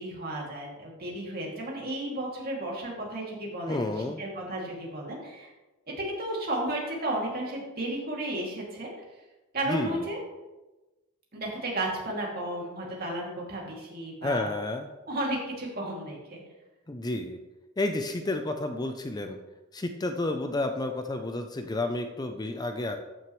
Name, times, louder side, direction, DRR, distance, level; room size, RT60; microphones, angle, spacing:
voice 1, 0.0-3.9 4.2-5.5 6.0-8.9 9.5-10.2 11.3-14.5 15.1-16.4, right 1 dB, 50° right, -2 dB, 2.5 m, -33 dB
voice 2, 3.7-4.2 9.7-10.1 14.2-14.9 16.9-17.4 17.8-19.4 19.7-23.0, left 2 dB, 20° left, 6 dB, 0.5 m, -31 dB
13.5 x 6.3 x 3.1 m, 1.1 s
head